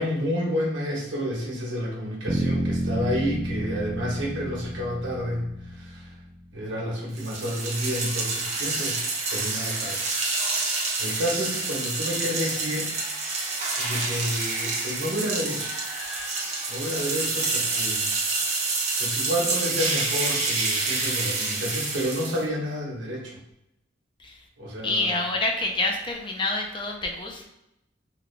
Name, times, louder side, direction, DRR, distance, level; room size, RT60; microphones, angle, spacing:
voice 1, 0.0-6.1 6.5-9.0 9.3-10.0 10.6-12.9 13.8-15.7 16.7-18.1 18.4-18.6 19.0-23.4 24.6-25.2, equal, 85° right, -2 dB, 1.2 m, -30 dB
sound 1, 2.3-6.3, right 1 dB, 20° right, 0.3 m, -30 dB
sound 2, 7.2-22.4, right 3 dB, 35° right, 0.9 m, -28 dB
voice 2, 24.8-27.5, left 2 dB, 25° left, 1 dB, 0.5 m, -27 dB
3.8 x 2.4 x 3.3 m, 0.85 s
head